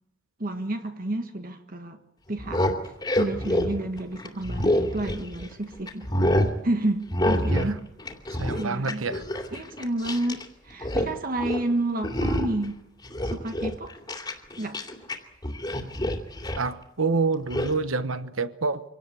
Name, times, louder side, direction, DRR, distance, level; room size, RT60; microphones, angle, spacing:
voice 1, 0.4-2.0 2.3-2.7 3.2-6.1 6.6-7.8 8.5-9.1 9.5-12.8 13.2-14.0 14.6-14.8, right 1 dB, 45° right, 1.5 m, -30 dB
sound 1, 2.3-5.5 5.9-6.5 7.1-7.7 8.0-10.4 10.7-11.1 11.4-11.6 12.0-12.7 13.0-15.2 15.4-16.7 17.5-17.7, left 1 dB, 20° left, 2.7 m, -27 dB
voice 2, 8.4-9.2 16.6-18.8, right 4 dB, 85° right, 1.1 m, -27 dB
25.5 x 18.0 x 8.5 m
head